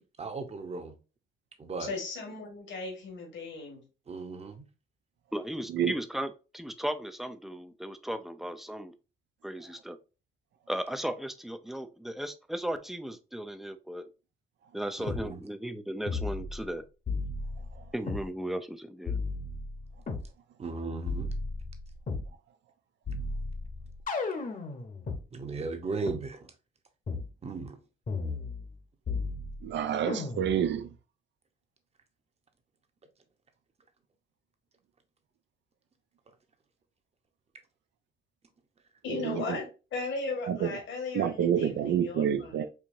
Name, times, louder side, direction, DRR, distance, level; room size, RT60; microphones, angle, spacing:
voice 1, 0.2-0.9 1.6-1.9 4.1-4.6 15.0-15.4 20.6-21.3 25.3-26.4 27.4-27.8, right 3 dB, 30° right, 0.9 m, -36 dB
voice 2, 1.8-3.8 39.0-39.6 39.9-42.5, left 3 dB, 70° left, 1.6 m, -36 dB
voice 3, 5.3-8.9 9.4-10.0 10.7-14.1 14.7-16.8 17.9-19.1, right 1 dB, ahead, 0.4 m, -36 dB
sound 1, 15.1-15.3 16.1-16.7 17.1-18.3 19.1-20.3 21.1-22.3 23.1-25.2 26.1-26.2 27.1-27.3 28.1-28.8 29.1-29.7 30.1-30.7, left 3 dB, 40° left, 1.0 m, -34 dB
voice 4, 29.6-30.9 39.1-39.6 40.5-40.7 41.1-42.7, right 9 dB, 65° right, 0.4 m, -28 dB
4.6 x 2.7 x 2.6 m
cardioid pair, 90°, 20 cm